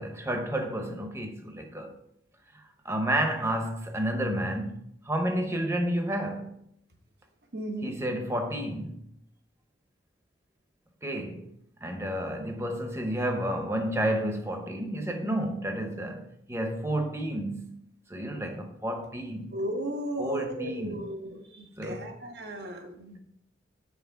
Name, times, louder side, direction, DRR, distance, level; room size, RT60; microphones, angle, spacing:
voice 1, 0.0-1.9 2.8-6.6 7.8-9.0 11.0-11.5 11.8-17.8 18.1-19.5 20.2-21.1 21.8-22.1, right 1 dB, 15° right, 0.8 m, -31 dB
voice 2, 7.5-7.9 19.5-23.2, right 1 dB, 60° right, 1.0 m, -35 dB
5.8 x 4.3 x 5.7 m
head